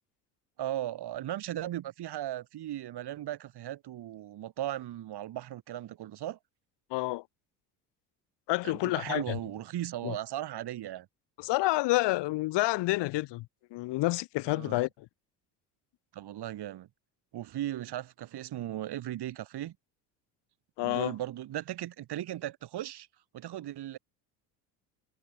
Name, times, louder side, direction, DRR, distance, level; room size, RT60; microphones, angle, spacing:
voice 1, 0.6-6.4 8.6-11.1 14.5-14.8 16.1-16.9 17.3-19.8 20.8-23.1 23.3-24.0, right 13 dB, 50° right, 2.9 m, -37 dB
voice 2, 6.9-7.2 8.5-9.4 10.0-10.2 11.4-13.5 13.7-15.1 20.8-21.1, left 19 dB, 60° left, 1.2 m, -29 dB
hypercardioid pair, 65°, 49 cm